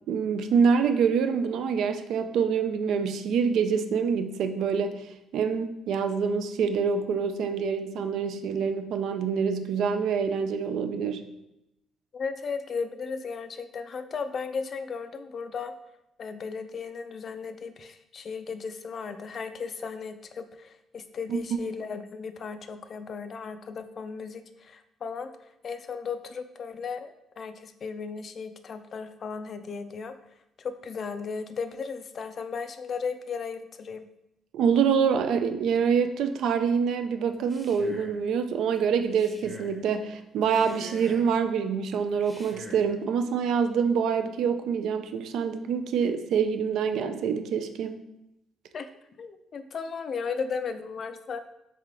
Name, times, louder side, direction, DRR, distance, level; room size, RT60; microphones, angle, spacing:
voice 1, 0.1-5.1 5.3-11.2 21.3-21.4 34.5-48.0, right 6 dB, 70° right, 8 dB, 0.3 m, -26 dB
voice 2, 12.1-15.7 16.2-30.2 30.6-34.1 48.7-48.9 49.2-51.4, left 5 dB, 45° left, 10 dB, 0.3 m, -35 dB
Male speech man speaking, 37.3-38.2 39.0-39.8 40.4-41.4 42.1-42.9, equal, 5° left, 0.7 m, -46 dB
3.6 x 3.2 x 3.7 m, 0.86 s
cardioid pair, 115°, 0 cm